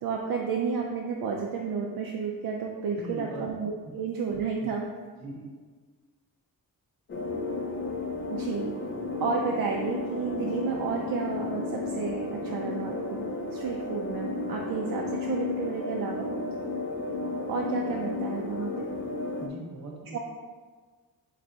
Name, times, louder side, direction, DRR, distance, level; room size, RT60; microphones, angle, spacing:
voice 1, 0.0-4.9 8.3-8.7 9.2-16.3 17.5-18.9 20.1-20.2, right 5 dB, 70° right, 0 dB, 0.5 m, -31 dB
voice 2, 2.9-3.5 4.6-4.7 5.2-5.5 19.4-20.2, right 1 dB, 50° right, -1 dB, 0.9 m, -40 dB
sound 1, 7.1-19.5, left 3 dB, 35° left, 0.4 m, -33 dB
3.4 x 3.1 x 3.8 m, 1.5 s
cardioid pair, 105°, 36 cm